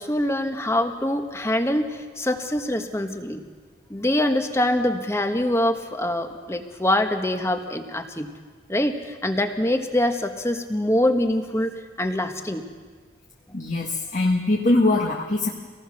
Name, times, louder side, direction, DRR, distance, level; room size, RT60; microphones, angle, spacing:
voice 1, 0.0-3.4 3.9-8.3 8.7-12.7, left 1 dB, 15° left, 6 dB, 1.4 m, -24 dB
voice 2, 13.5-15.5, left 2 dB, 45° left, 0 dB, 1.6 m, -22 dB
25.5 x 18.5 x 6.6 m, 1.5 s
head